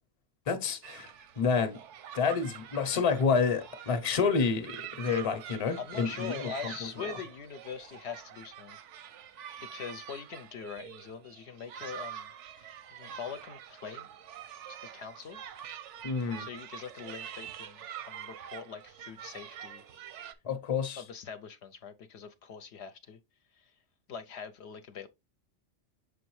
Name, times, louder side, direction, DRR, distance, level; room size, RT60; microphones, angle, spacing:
voice 1, 0.5-1.1 1.4-1.8 2.1-6.7 7.0-7.1 16.0-16.5 20.4-21.0, left 5 dB, 35° left, 0.7 m, -29 dB
sound 1, 0.8-20.3, right 10 dB, 85° right, 0.9 m, -46 dB
voice 2, 5.8-8.8 9.6-14.1 14.7-15.4 16.4-17.8 18.1-19.8 21.0-23.2 23.6-23.7 24.1-25.1, left 6 dB, 70° left, 0.8 m, -43 dB
6.1 x 5.0 x 3.1 m
omnidirectional pair, 1.2 m